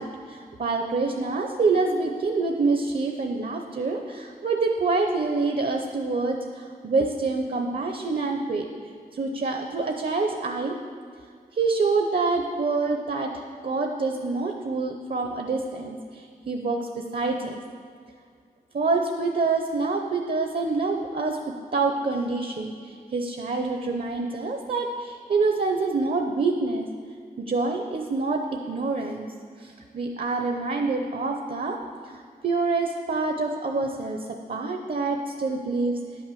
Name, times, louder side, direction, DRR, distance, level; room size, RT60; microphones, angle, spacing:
voice 1, 0.0-8.7 9.1-10.8 11.5-17.6 18.7-26.9 27.4-29.3 29.6-31.8 32.1-36.0, right 3 dB, 60° right, 3 dB, 0.8 m, -26 dB
10.5 x 6.0 x 7.6 m, 2.1 s
wide cardioid pair, 85°, 16 cm